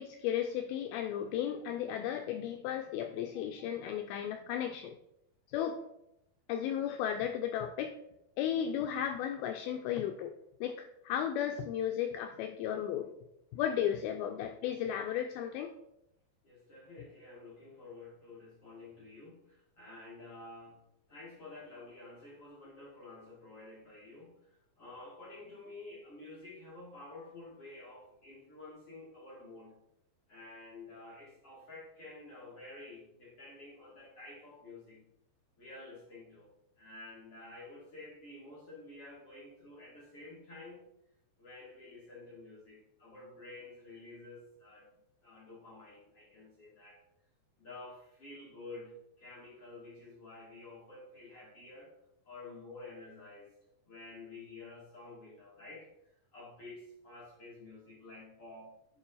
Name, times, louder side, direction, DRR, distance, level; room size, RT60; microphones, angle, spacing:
voice 1, 0.0-5.0 5.5-5.8 6.5-8.0 8.4-10.3 10.6-13.1 13.5-15.7, left 9 dB, 90° left, 6 dB, 2.1 m, -34 dB
voice 2, 16.4-20.8 21.1-24.4 24.8-29.8 30.3-35.0 35.6-36.5 36.8-40.9 41.4-44.9 45.2-47.0 47.6-51.9 52.2-53.5 53.8-55.9 56.3-58.7, left 2 dB, 40° left, -8 dB, 2.7 m, -50 dB
10.5 x 4.4 x 4.0 m, 0.82 s
omnidirectional pair, 4.9 m